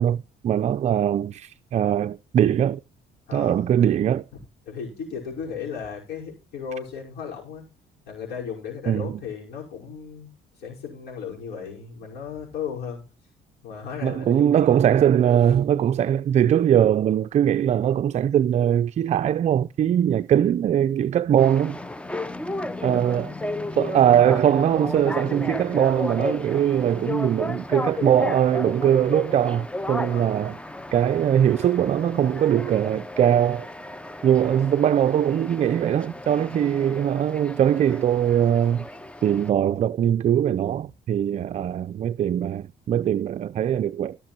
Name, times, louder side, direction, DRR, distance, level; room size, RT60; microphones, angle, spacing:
voice 1, 0.0-2.8 3.3-4.2 8.9-9.1 14.0-21.8 22.8-23.3 23.8-30.6 30.9-33.7 34.2-38.9 39.2-44.2, right 10 dB, 40° right, 0.4 m, -21 dB
voice 2, 3.3-3.7 4.7-7.7 8.1-10.3 10.6-13.0 13.6-14.8 15.4-15.5 20.4-20.5 30.1-30.3 34.4-34.6, left 6 dB, 70° left, 5.6 m, -35 dB
sound 1, 21.4-39.5, left 2 dB, 5° left, 0.6 m, -34 dB
15.0 x 6.7 x 4.4 m
cardioid pair, 110°, 17 cm